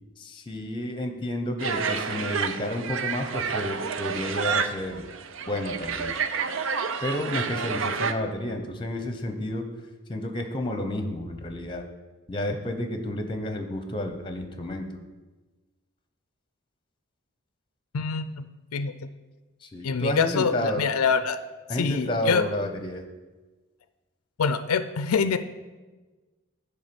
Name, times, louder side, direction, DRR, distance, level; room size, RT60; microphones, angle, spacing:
voice 1, 0.2-5.1 5.5-6.1 7.0-9.6 10.1-11.8 12.3-14.9 19.6-20.9 21.7-23.0, left 1 dB, 20° left, 6 dB, 0.8 m, -31 dB
sound 1, 1.6-8.1, right 6 dB, 60° right, 0.5 m, -29 dB
voice 2, 17.9-18.4 18.7-18.9 19.8-21.4 21.8-22.4 24.4-25.4, left 5 dB, 90° left, 12 dB, 0.5 m, -25 dB
10.5 x 3.5 x 6.9 m, 1.2 s
head